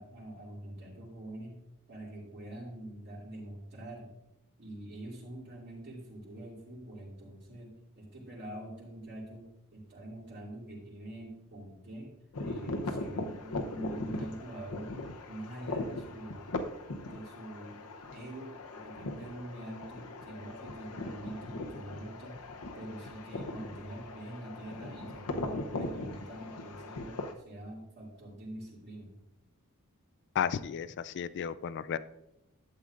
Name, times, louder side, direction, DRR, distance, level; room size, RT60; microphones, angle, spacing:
voice 1, 0.0-1.6 1.9-4.1 4.6-12.1 12.4-15.0 15.3-16.5 17.0-17.8 18.1-22.4 22.7-29.1, right 1 dB, 50° right, -4 dB, 2.6 m, -45 dB
sound 1, 12.3-27.3, left 2 dB, 80° left, 0.8 m, -39 dB
voice 2, 30.4-32.0, left 8 dB, 50° left, 15 dB, 0.4 m, -33 dB
11.5 x 7.9 x 2.5 m, 0.89 s
head